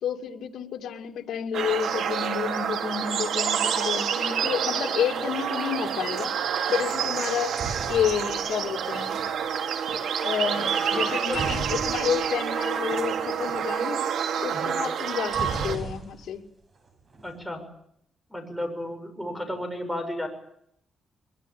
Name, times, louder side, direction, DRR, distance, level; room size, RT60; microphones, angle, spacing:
voice 1, 0.0-6.4 6.7-7.5 7.9-9.2 10.2-14.0 14.4-16.4, left 8 dB, 80° left, 3 dB, 2.6 m, -30 dB
sound 1, 1.5-15.8, right 7 dB, 85° right, 3.0 m, -28 dB
sound 2, 7.2-9.4 11.3-12.5 12.8-12.9 13.1-13.4 15.3-16.5 16.8-17.4, right 4 dB, 40° right, 5.8 m, -36 dB
voice 2, 10.4-11.8 14.5-14.8 17.2-17.6 18.3-20.3, left 1 dB, ahead, 7 dB, 6.6 m, -34 dB
23.0 x 22.5 x 8.6 m, 0.72 s
cardioid pair, 130°, 0 cm